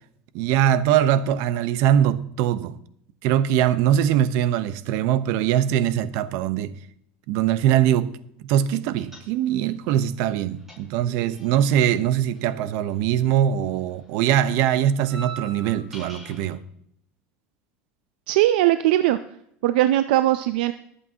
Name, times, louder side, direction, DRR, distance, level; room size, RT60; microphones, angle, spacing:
voice 1, 0.3-2.8 3.2-6.8 7.3-8.1 8.4-16.6, right 10 dB, 65° right, 0.9 m, -22 dB
sound 1, 9.0-9.7 10.0-13.4 13.6-16.5, right 4 dB, 5° right, 5.9 m, -43 dB
voice 2, 18.3-19.2 19.6-20.7, right 14 dB, 85° right, 0.5 m, -19 dB
23.0 x 8.3 x 2.9 m
supercardioid pair, 115°, 5 cm